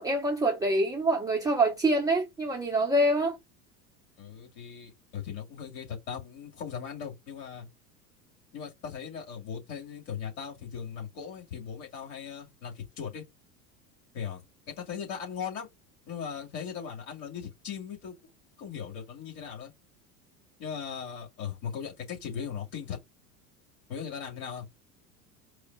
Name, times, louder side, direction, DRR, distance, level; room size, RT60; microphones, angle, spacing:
voice 1, 0.0-3.4, right 1 dB, 10° right, 0.8 m, -25 dB
voice 2, 4.2-7.7 8.5-13.2 14.1-15.7 16.1-18.2 18.6-19.7 20.6-23.0 23.9-24.6, left 7 dB, 55° left, 2.3 m, -38 dB
4.7 x 2.0 x 3.5 m
figure-of-eight pair, 80°, 50 cm